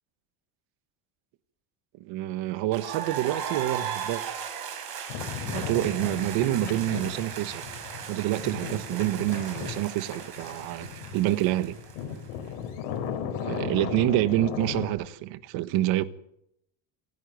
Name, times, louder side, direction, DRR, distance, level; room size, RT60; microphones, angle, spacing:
voice 1, 2.0-4.2 5.5-7.8 8.1-11.8 13.4-16.0, right 15 dB, 75° right, 1.5 m, -27 dB
sound 1, 2.7-12.5, right 8 dB, 50° right, 5.8 m, -37 dB
sound 2, 5.1-14.9, left 8 dB, 90° left, 4.6 m, -36 dB
27.0 x 11.0 x 9.3 m
cardioid pair, 140°, 47 cm